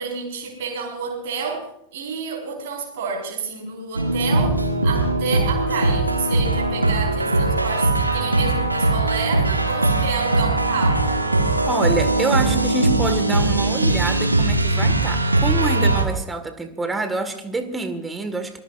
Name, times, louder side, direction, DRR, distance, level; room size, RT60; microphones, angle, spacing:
voice 1, 0.0-11.1, right 5 dB, 55° right, 0 dB, 5.1 m, -30 dB
sound 1, 4.0-16.0, right 2 dB, 85° right, 1.9 m, -20 dB
voice 2, 11.7-18.6, right 3 dB, 10° right, 8 dB, 1.9 m, -26 dB
25.0 x 20.5 x 2.6 m, 0.74 s
figure-of-eight pair, 90°, 0 cm